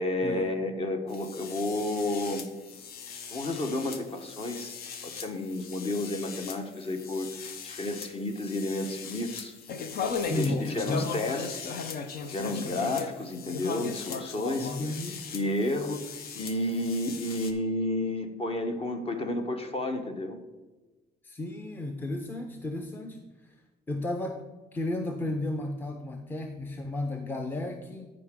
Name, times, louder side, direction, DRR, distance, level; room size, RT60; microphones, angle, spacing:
voice 1, 0.0-2.5 3.3-9.6 10.2-11.7 12.3-14.7 15.3-20.4, left 1 dB, 35° left, 6 dB, 1.1 m, -31 dB
sound 1, 1.1-17.5, left 5 dB, 65° left, 0.8 m, -38 dB
voice 2, 10.2-11.1 14.6-15.2 21.2-23.6 23.9-24.4 24.7-28.1, left 2 dB, 10° left, 5 dB, 0.6 m, -33 dB
13.0 x 5.0 x 3.7 m, 1.2 s
cardioid pair, 110°, 17 cm